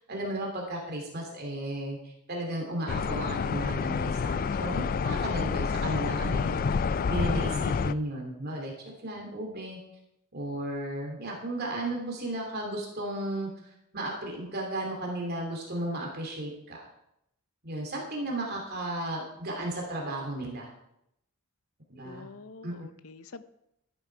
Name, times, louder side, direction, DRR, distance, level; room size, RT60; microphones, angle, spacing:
voice 1, 0.0-8.7 9.0-9.8 10.3-16.9 17.6-20.7 21.9-22.3 22.6-22.9, right 1 dB, 45° right, 0 dB, 2.7 m, -34 dB
sound 1, 2.9-7.9, left 5 dB, 40° left, 0.3 m, -28 dB
voice 2, 22.0-23.4, left 4 dB, 65° left, 13 dB, 0.7 m, -46 dB
13.0 x 9.8 x 4.5 m, 0.79 s
head